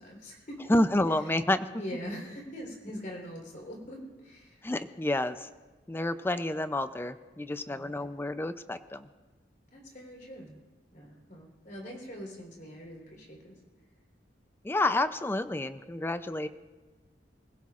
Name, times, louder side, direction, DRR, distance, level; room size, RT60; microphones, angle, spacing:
voice 1, 0.0-0.8 1.8-4.7 7.7-7.9 9.7-10.6 10.9-13.6, equal, 50° left, 0 dB, 3.8 m, -43 dB
voice 2, 0.7-1.7 4.6-5.5 5.9-9.1 14.6-16.5, left 1 dB, 15° left, 11 dB, 0.5 m, -29 dB
25.5 x 16.0 x 2.5 m, 1.2 s
head